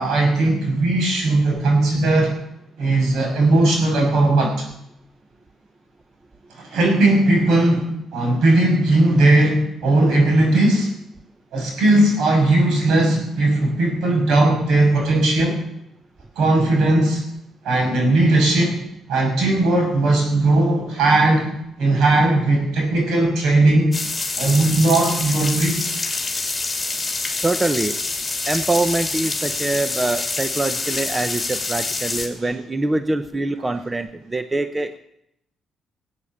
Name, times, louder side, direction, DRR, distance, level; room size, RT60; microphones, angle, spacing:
voice 1, 0.0-2.4 2.8-4.6 6.6-10.9 11.5-15.6 16.4-17.2 17.6-18.8 19.1-21.5 21.8-24.0 24.4-25.8, right 2 dB, 80° right, 1 dB, 6.3 m, -18 dB
sound 1, 23.9-32.3, left 3 dB, 15° left, 2.9 m, -26 dB
voice 2, 27.4-27.9 28.5-35.0, right 2 dB, 20° right, 9 dB, 0.8 m, -24 dB
18.5 x 8.4 x 7.3 m, 0.80 s
cardioid pair, 90°, 0 cm